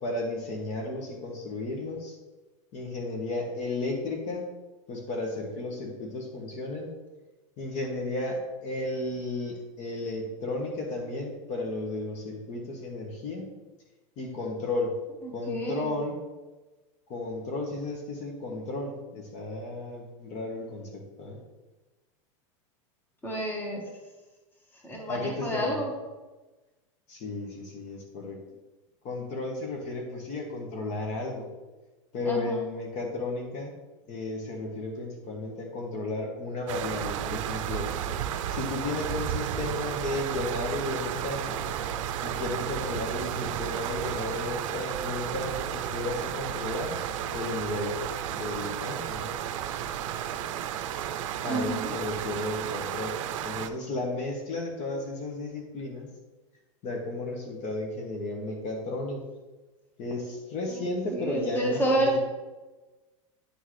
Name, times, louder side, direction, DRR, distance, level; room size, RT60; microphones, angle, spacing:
voice 1, 0.0-2.2 2.7-4.4 4.9-6.9 7.6-13.5 14.2-15.0 15.3-16.2 17.1-21.4 25.1-25.8 27.1-28.4 29.0-31.4 32.1-33.7 34.1-37.9 38.5-41.7 42.2-47.0 47.3-48.0 48.3-49.4 51.4-53.2 53.4-56.1 56.8-59.2 60.0-62.2, left 2 dB, 45° left, 1 dB, 1.4 m, -33 dB
voice 2, 15.5-15.9 23.2-23.8 24.8-25.9 32.2-32.6 51.5-51.9 60.7-60.8 61.1-62.2, right 1 dB, 10° left, -1 dB, 1.5 m, -29 dB
sound 1, 36.7-53.7, right 10 dB, 75° right, 0.5 m, -33 dB
9.9 x 3.8 x 3.3 m, 1.2 s
supercardioid pair, 125°, 17 cm